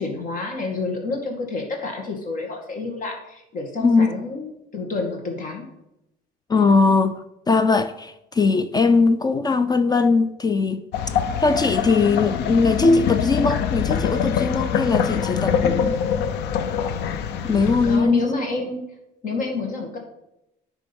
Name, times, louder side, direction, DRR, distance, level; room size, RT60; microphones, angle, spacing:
voice 1, 0.0-5.6 17.8-18.8 19.2-20.0, left 3 dB, 50° left, 2.1 m, -29 dB
voice 2, 3.8-4.1 6.5-10.8 11.4-16.0 17.4-18.2, left 4 dB, 25° left, 0.4 m, -20 dB
sound 1, 10.9-18.0, left 7 dB, 80° left, 0.6 m, -24 dB
10.0 x 3.6 x 5.3 m
cardioid pair, 110°, 17 cm